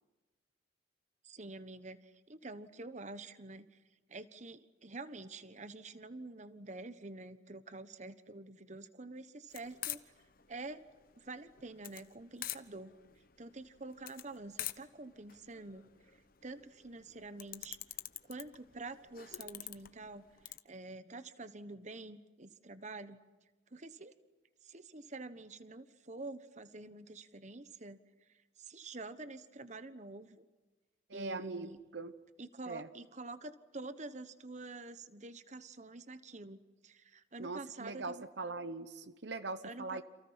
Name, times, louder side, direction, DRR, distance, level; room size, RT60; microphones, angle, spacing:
voice 1, 1.2-3.8 4.1-10.0 10.5-10.8 11.2-12.9 13.4-15.9 16.4-17.8 18.2-23.2 23.7-24.1 24.6-28.0 28.6-30.4 31.1-31.8 32.4-38.2 39.6-40.0, right 2 dB, 40° right, 12 dB, 1.2 m, -47 dB
sound 1, 9.5-20.6, left 13 dB, 50° left, 1.1 m, -47 dB
voice 2, 31.1-32.1 32.7-32.9 37.4-40.0, right 3 dB, 65° right, 12 dB, 1.0 m, -41 dB
30.0 x 28.0 x 5.8 m, 1.2 s
head